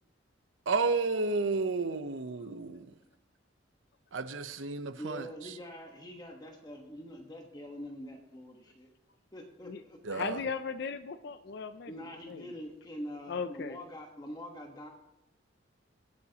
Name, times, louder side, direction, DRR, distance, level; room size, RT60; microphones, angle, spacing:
voice 1, 0.7-2.9 4.1-5.5 10.0-10.4, right 3 dB, 80° right, 11 dB, 0.8 m, -32 dB
voice 2, 5.0-8.9 9.3-10.2 11.9-14.9, equal, 20° left, 2 dB, 1.2 m, -44 dB
voice 3, 10.1-11.9 12.3-12.4 13.3-13.8, left 5 dB, 55° left, 11 dB, 0.4 m, -37 dB
24.0 x 8.5 x 2.9 m, 0.91 s
head